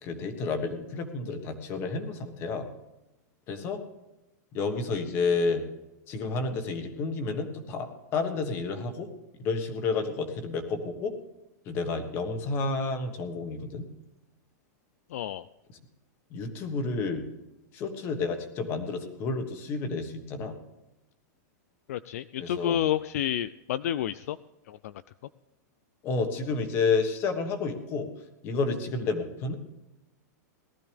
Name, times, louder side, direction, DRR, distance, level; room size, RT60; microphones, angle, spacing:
voice 1, 0.0-2.7 3.5-3.8 4.5-5.6 6.1-9.1 9.4-11.1 11.6-13.8 16.3-17.2 17.7-20.6 22.4-22.8 26.0-28.1 28.4-29.6, left 4 dB, 25° left, 7 dB, 1.4 m, -30 dB
voice 2, 15.1-15.4 21.9-24.4 24.7-24.9, left 11 dB, 55° left, 15 dB, 0.4 m, -30 dB
18.5 x 13.0 x 3.4 m, 0.96 s
supercardioid pair, 175°, 9 cm